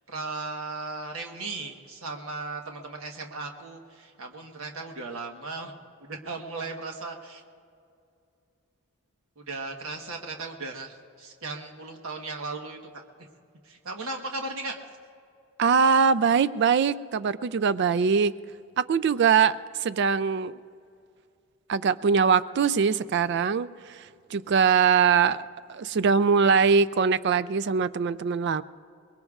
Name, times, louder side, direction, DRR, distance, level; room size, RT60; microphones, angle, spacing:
voice 1, 0.1-5.7 6.0-7.4 9.4-13.0 13.6-14.8, right 3 dB, 75° right, 3 dB, 1.2 m, -36 dB
voice 2, 15.6-18.4 18.8-20.6 21.7-28.6, right 6 dB, 55° right, 16 dB, 0.3 m, -22 dB
23.5 x 21.5 x 2.4 m, 2.4 s
head